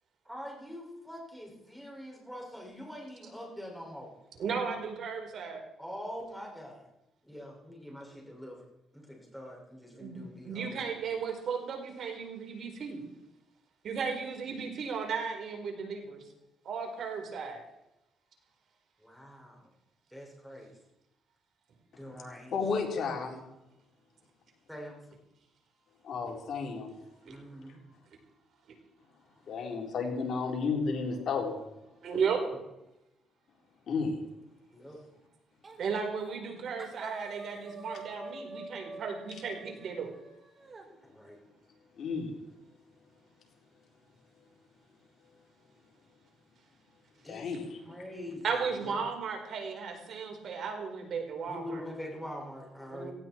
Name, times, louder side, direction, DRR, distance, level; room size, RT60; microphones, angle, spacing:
voice 1, 0.3-4.1 5.8-6.9 7.2-8.6 8.9-11.0 19.0-19.6 20.1-20.7 21.9-22.5 24.7-25.0 27.2-27.8 34.7-35.0 41.0-41.4 47.2-47.5 47.9-49.0 51.5-53.1, equal, ahead, -1 dB, 6.2 m, -44 dB
voice 2, 4.4-5.6 9.9-10.2 10.4-13.0 13.8-16.2 16.6-17.6 27.2-27.4 32.0-32.5 35.8-40.1 48.4-51.8 52.9-53.1, right 5 dB, 60° right, 3 dB, 4.5 m, -35 dB
voice 3, 22.5-23.4 26.0-26.9 29.5-31.5 33.9-34.1 42.0-42.3 47.3-47.8, left 5 dB, 60° left, 1 dB, 4.2 m, -32 dB
sound 1, 35.6-35.9 36.2-36.5 36.8-40.9, right 3 dB, 35° right, 3.0 m, -46 dB
17.5 x 16.0 x 4.6 m, 0.89 s
cardioid pair, 90°, 0 cm